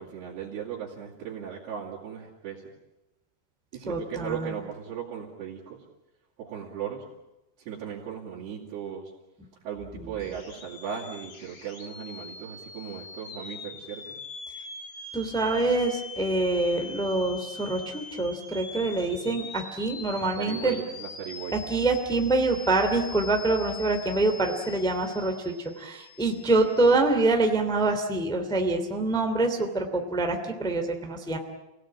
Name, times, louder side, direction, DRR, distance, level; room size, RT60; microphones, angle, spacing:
voice 1, 0.0-2.6 3.7-5.8 6.4-7.0 7.6-9.1 9.6-14.2 20.4-21.6, right 8 dB, 65° right, -6 dB, 4.7 m, -37 dB
voice 2, 3.8-4.5 9.9-10.1 14.5-14.6 15.1-20.8 21.5-31.4, right 2 dB, ahead, 4 dB, 1.4 m, -25 dB
sound 1, 10.2-26.9, left 4 dB, 35° left, 2.1 m, -43 dB
29.0 x 18.0 x 8.9 m, 0.99 s
omnidirectional pair, 5.1 m